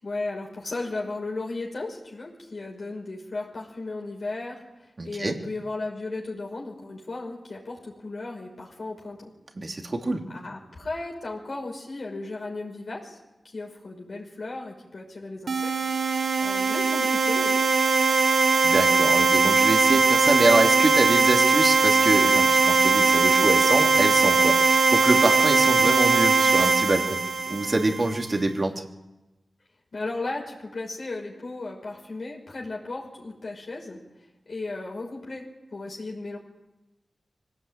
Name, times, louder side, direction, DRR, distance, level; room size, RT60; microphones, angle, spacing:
voice 1, 0.0-9.3 10.3-13.2 13.4-15.8 16.1-17.6 29.9-34.0 34.5-35.4 35.7-36.4, left 2 dB, 55° left, -2 dB, 5.6 m, -35 dB
voice 2, 5.0-5.3 9.5-10.2 18.1-18.2 18.6-27.2 27.5-28.8, right 2 dB, 40° right, 2 dB, 3.1 m, -25 dB
sound 1, 15.5-28.2, right 4 dB, 75° right, 1.4 m, -20 dB
24.5 x 18.0 x 9.0 m, 1.0 s
wide cardioid pair, 105°, 0 cm